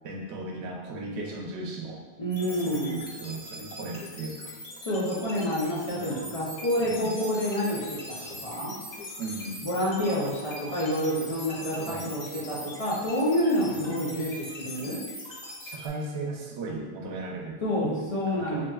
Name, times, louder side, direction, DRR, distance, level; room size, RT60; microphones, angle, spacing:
voice 1, 0.0-2.0 2.4-4.6 5.9-6.2 6.8-7.1 9.2-9.7 11.8-12.2 13.7-14.3 15.6-18.7, right 3 dB, 85° right, -1 dB, 0.9 m, -37 dB
voice 2, 2.2-3.0 4.8-7.9 8.4-8.7 9.6-15.0 17.6-18.7, equal, 40° left, -7 dB, 0.5 m, -28 dB
sound 1, 2.3-15.9, left 1 dB, 85° left, 1.2 m, -41 dB
3.3 x 2.6 x 2.3 m, 1.4 s
omnidirectional pair, 1.1 m